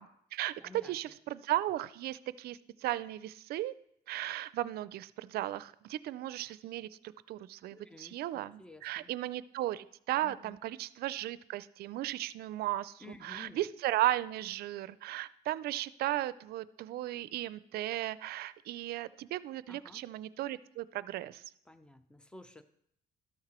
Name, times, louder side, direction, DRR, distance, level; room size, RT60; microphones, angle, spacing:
voice 1, 0.0-0.5 0.8-3.7 4.1-21.4, right 14 dB, 70° right, 17 dB, 0.4 m, -36 dB
voice 2, 0.6-1.2 7.7-9.1 10.2-10.6 13.0-13.6 19.7-20.1 21.7-22.6, left 2 dB, 5° left, 11 dB, 0.6 m, -53 dB
13.0 x 5.9 x 4.3 m, 0.71 s
cardioid pair, 110°, 17 cm